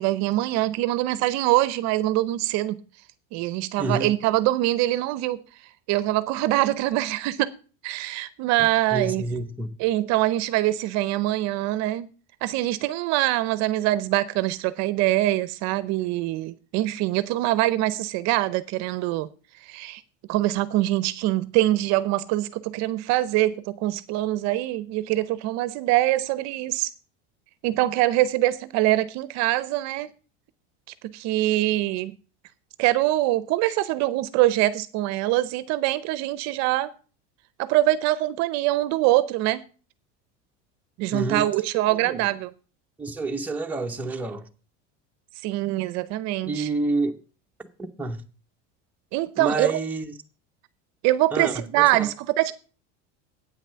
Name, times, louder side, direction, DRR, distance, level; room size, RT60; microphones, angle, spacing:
voice 1, 0.0-2.8 3.3-5.4 5.9-7.5 7.8-9.2 9.8-12.1 12.4-19.3 19.6-20.0 20.3-26.9 27.6-30.1 31.0-32.1 32.8-36.9 37.6-39.6 41.0-42.5 45.4-46.7 49.1-49.8 51.0-52.5, right 16 dB, 50° right, 0.7 m, -24 dB
voice 2, 3.8-4.1 8.6-9.8 41.1-41.5 41.9-42.3 43.0-44.5 46.4-47.2 47.6-47.7 48.0-48.3 49.4-50.2 51.3-52.1, right 3 dB, 5° right, 0.8 m, -29 dB
8.9 x 6.0 x 6.7 m
supercardioid pair, 150°, 35 cm